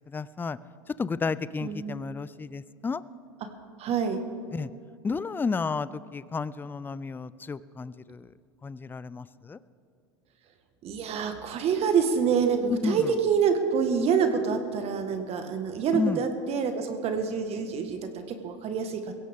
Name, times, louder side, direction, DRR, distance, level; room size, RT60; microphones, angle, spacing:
voice 1, 0.1-0.6 0.9-3.0 4.5-4.7 5.0-8.3 8.6-9.6 12.8-13.1 15.9-16.2, left 4 dB, 15° left, 17 dB, 0.4 m, -32 dB
voice 2, 1.6-2.0 3.8-4.2 10.8-19.1, right 6 dB, 45° right, 6 dB, 1.6 m, -27 dB
21.5 x 16.5 x 3.6 m, 2.3 s
hypercardioid pair, 90°, 15 cm